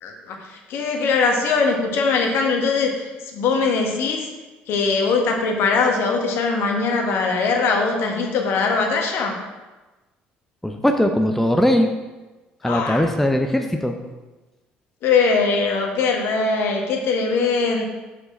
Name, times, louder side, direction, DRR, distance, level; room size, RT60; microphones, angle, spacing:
voice 1, 0.0-4.3 4.7-9.4 12.6-13.1 15.0-17.8, left 4 dB, 55° left, 2 dB, 1.4 m, -21 dB
voice 2, 10.6-11.9 12.6-14.0, left 1 dB, 5° left, 4 dB, 0.7 m, -19 dB
6.9 x 6.6 x 4.4 m, 1.2 s
figure-of-eight pair, 55°, 5 cm